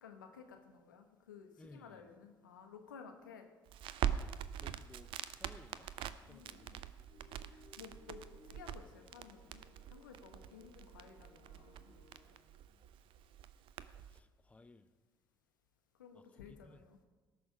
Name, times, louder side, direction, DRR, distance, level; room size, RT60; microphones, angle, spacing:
voice 1, 0.0-3.5 6.3-6.8 7.5-9.6 9.9-11.9 16.0-17.0, left 6 dB, 85° left, 1.1 m, -55 dB
voice 2, 1.6-2.2 4.0-4.3 4.6-5.9 6.3-6.8 12.7-12.8 14.1-14.9 16.1-16.8, left 2 dB, 15° left, 0.6 m, -59 dB
Crackle, 3.7-14.2, right 10 dB, 55° right, 0.6 m, -44 dB
sound 1, 7.1-12.4, left 2 dB, 60° left, 4.0 m, -64 dB
17.5 x 6.3 x 4.9 m
hypercardioid pair, 55°, 10 cm